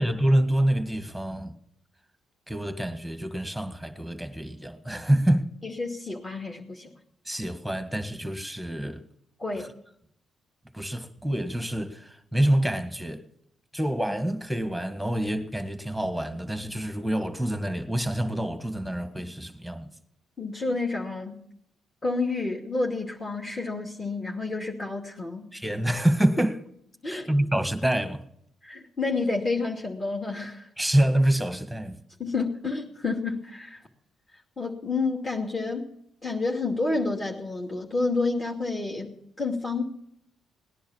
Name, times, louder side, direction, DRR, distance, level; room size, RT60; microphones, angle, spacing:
voice 1, 0.0-1.5 2.5-5.5 7.2-9.0 9.6-9.7 10.7-13.2 13.7-19.9 25.5-26.6 27.0-28.2 30.8-32.0, right 1 dB, ahead, 1.7 m, -26 dB
voice 2, 5.6-6.9 9.4-9.7 20.4-21.4 22.0-25.5 27.0-27.3 28.6-30.7 32.2-33.8 34.6-35.9 36.2-39.8, left 3 dB, 30° left, 2.6 m, -29 dB
18.5 x 10.5 x 7.3 m
cardioid pair, 90°, 0 cm